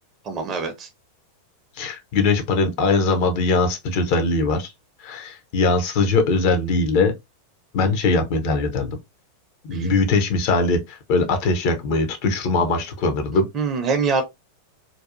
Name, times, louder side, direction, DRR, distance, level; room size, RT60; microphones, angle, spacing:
voice 1, 0.2-0.9 9.7-9.9 13.5-14.2, right 4 dB, 30° right, 0.6 m, -24 dB
voice 2, 1.8-4.7 5.0-7.1 7.7-9.0 9.6-13.5, left 3 dB, 45° left, 0.7 m, -21 dB
2.6 x 2.3 x 2.5 m
figure-of-eight pair, 90°, 0 cm